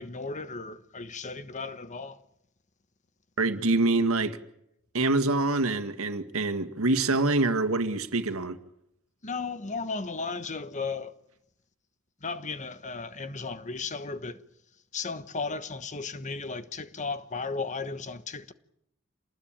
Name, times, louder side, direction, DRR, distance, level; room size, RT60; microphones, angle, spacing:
voice 1, 0.0-2.2 9.2-11.1 12.2-14.4 14.9-18.5, left 4 dB, 35° left, 1.2 m, -35 dB
voice 2, 3.4-4.4 4.9-8.6, right 2 dB, 75° right, 1.9 m, -25 dB
27.5 x 20.0 x 8.9 m
head